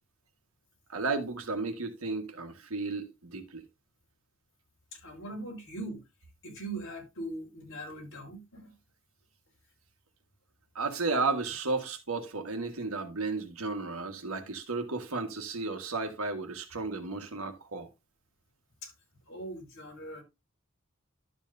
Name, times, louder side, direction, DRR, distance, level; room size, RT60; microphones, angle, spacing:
voice 1, 0.9-3.6 10.7-17.9, right 3 dB, 85° right, 1.6 m, -33 dB
voice 2, 4.9-6.0 6.4-8.7 18.8-18.9 19.3-20.2, right 1 dB, 60° left, 4.9 m, -41 dB
12.0 x 7.4 x 2.7 m
head